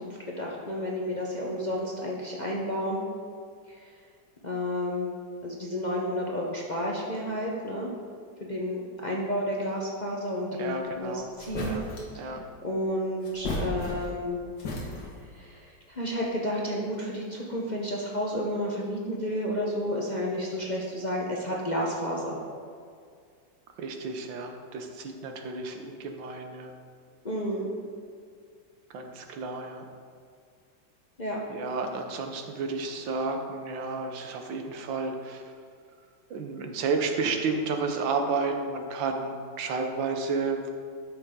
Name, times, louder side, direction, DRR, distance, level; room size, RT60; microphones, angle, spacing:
voice 1, 0.0-3.0 3.7-3.9 4.4-5.1 5.4-7.9 8.4-10.7 11.0-11.7 12.1-12.3 12.6-14.4 15.3-22.4 27.2-27.7 31.2-31.4, equal, 35° left, -3 dB, 0.7 m, -31 dB
voice 2, 10.6-11.3 11.6-11.8 12.2-12.5 23.8-26.7 28.9-29.9 31.5-35.4 36.3-40.7, right 4 dB, 90° right, 4 dB, 1.6 m, -31 dB
sound 1, 11.4-12.2 13.2-14.3 14.6-15.3, left 1 dB, 75° left, 2.1 m, -34 dB
12.0 x 6.3 x 3.7 m, 2.2 s
omnidirectional pair, 2.0 m